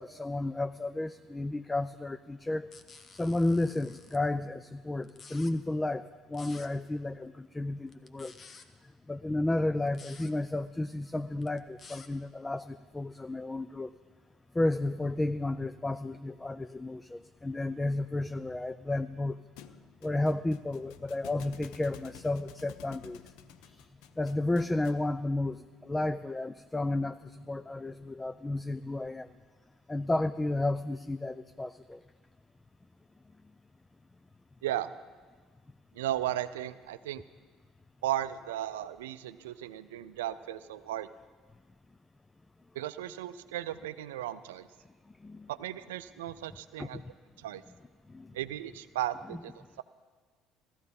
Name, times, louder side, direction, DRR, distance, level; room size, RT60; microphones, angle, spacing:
voice 1, 0.0-2.7 3.1-8.3 8.8-13.9 14.5-19.4 20.0-23.3 23.6-23.9 24.2-29.3 29.9-32.0 45.2-45.5 46.8-47.1 48.1-48.4, left 2 dB, 15° left, 12 dB, 0.4 m, -32 dB
sound 1, 2.7-4.2 5.0-5.5 6.3-6.7 7.9-8.7 9.9-10.3 11.4-12.1, left 4 dB, 40° left, 1.0 m, -51 dB
Thump thud, 19.6-25.1, left 10 dB, 70° left, 0.5 m, -52 dB
voice 2, 35.9-37.2 38.0-41.1 42.7-44.7 45.5-47.0 47.4-47.6 48.3-49.8, right 13 dB, 85° right, 14 dB, 0.4 m, -35 dB
15.0 x 13.5 x 5.4 m, 1.4 s
hypercardioid pair, 60°, 0 cm